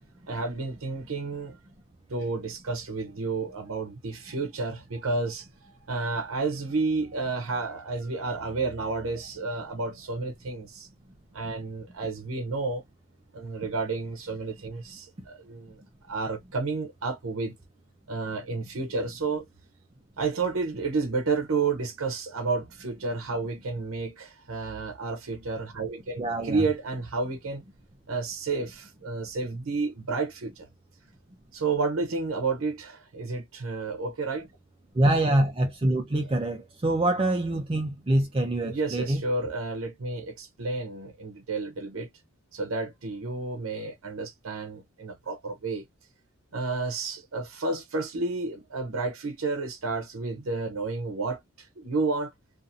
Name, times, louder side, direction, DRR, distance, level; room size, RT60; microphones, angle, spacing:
voice 1, 0.3-1.6 2.1-10.9 11.3-12.8 13.3-15.8 16.0-17.5 18.1-19.4 20.2-27.6 28.1-30.7 31.5-34.5 38.6-42.1 42.5-45.8 46.5-52.3, right 3 dB, 75° right, 0.7 m, -31 dB
voice 2, 26.2-26.7 34.9-39.2, right 1 dB, 25° right, 0.4 m, -25 dB
2.6 x 2.5 x 2.5 m
head